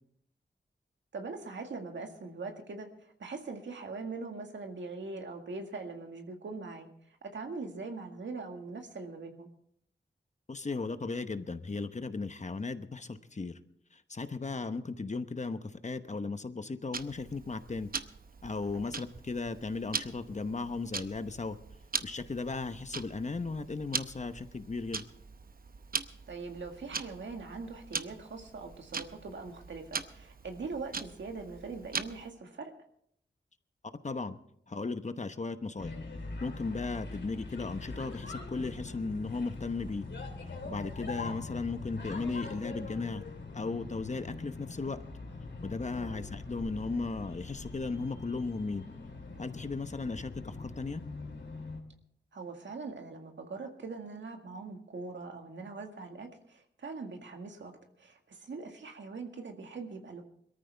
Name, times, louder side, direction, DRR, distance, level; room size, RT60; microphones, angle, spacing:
voice 1, 1.1-6.9 7.3-9.5 18.7-18.9 26.3-32.7 46.0-46.3 52.3-60.2, right 4 dB, 85° right, 4 dB, 1.9 m, -42 dB
voice 2, 10.5-13.6 14.1-17.9 18.4-21.6 22.0-25.0 34.0-34.3 34.7-35.9 36.4-40.1 40.6-43.2 43.5-45.0 45.6-48.9 49.4-51.0, left 3 dB, 40° left, 10 dB, 1.0 m, -36 dB
Tick-tock, 16.9-32.3, right 5 dB, 50° right, 0.8 m, -41 dB
sound 1, 35.8-51.8, left 3 dB, 75° left, 3.1 m, -43 dB
21.5 x 14.0 x 3.4 m, 0.68 s
cardioid pair, 65°, 19 cm